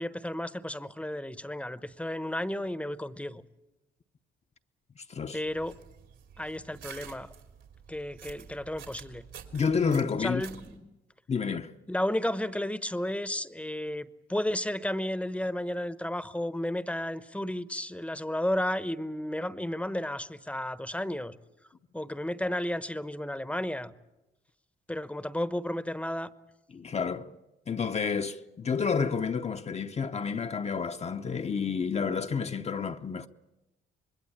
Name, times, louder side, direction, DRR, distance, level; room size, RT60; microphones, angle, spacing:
voice 1, 0.0-3.4 5.3-5.7 6.4-7.3 7.9-9.2 10.2-10.9 11.9-21.3 21.9-23.9 24.9-26.3, left 1 dB, 5° left, 1.0 m, -33 dB
voice 2, 5.0-5.4 9.5-10.4 11.3-11.7 26.7-27.3 27.7-33.3, left 5 dB, 35° left, 0.9 m, -30 dB
sound 1, 5.4-10.8, right 8 dB, 75° right, 3.2 m, -49 dB
25.5 x 20.5 x 8.6 m
cardioid pair, 90°, 20 cm